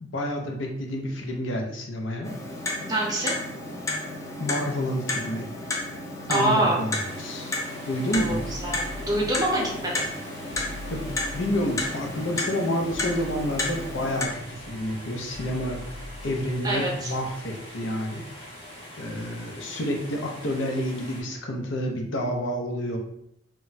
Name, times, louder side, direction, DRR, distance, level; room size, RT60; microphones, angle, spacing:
voice 1, 0.0-2.3 4.4-5.5 6.3-7.6 7.9-8.5 10.9-11.1 11.3-18.4 18.9-23.0, equal, 85° left, 1 dB, 0.6 m, -29 dB
Clock, 2.2-14.3, left 2 dB, 15° left, 0.4 m, -32 dB
voice 2, 2.9-3.3 6.3-6.8 8.1-10.0 16.6-17.1, right 1 dB, 20° right, -3 dB, 0.7 m, -26 dB
sound 1, 7.0-21.2, equal, 35° left, 0.8 m, -44 dB
sound 2, 8.1-10.2 10.5-17.6, equal, 55° right, 0.4 m, -42 dB
2.2 x 2.1 x 3.9 m, 0.74 s
head